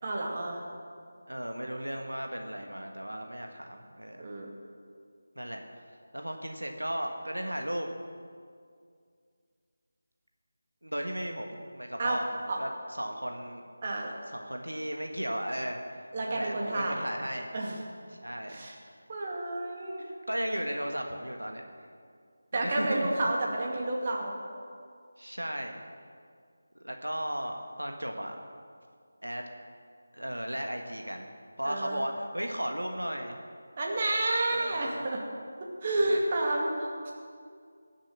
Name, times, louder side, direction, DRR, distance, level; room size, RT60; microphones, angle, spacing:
voice 1, 0.0-0.6 4.2-4.5 12.0-12.2 12.5-12.6 13.8-14.1 16.1-17.0 17.5-17.8 18.5-18.7 19.1-20.0 22.5-24.3 31.6-32.0 33.8-35.2 35.8-37.1, right 2 dB, 35° right, -1 dB, 2.3 m, -30 dB
voice 2, 1.3-4.2 5.4-5.6 6.1-7.9 10.8-12.3 12.6-13.6 14.3-15.8 16.2-17.5 18.1-18.7 20.0-21.6 22.5-23.3 25.2-25.8 26.8-28.4 29.2-29.4 30.1-31.3 31.6-33.4 34.5-35.0 36.1-36.2, equal, 85° right, 3 dB, 1.5 m, -35 dB
19.0 x 7.4 x 6.4 m, 2.2 s
figure-of-eight pair, 160°, 0 cm